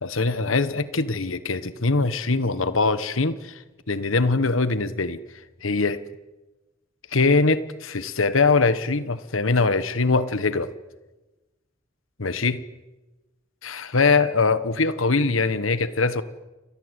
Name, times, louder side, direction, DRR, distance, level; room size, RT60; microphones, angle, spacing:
voice 1, 0.0-3.5 3.9-5.2 5.6-6.0 7.1-10.7 12.2-12.6 13.6-16.2, left 3 dB, 90° left, 13 dB, 1.4 m, -22 dB
29.5 x 22.5 x 8.4 m, 1.2 s
head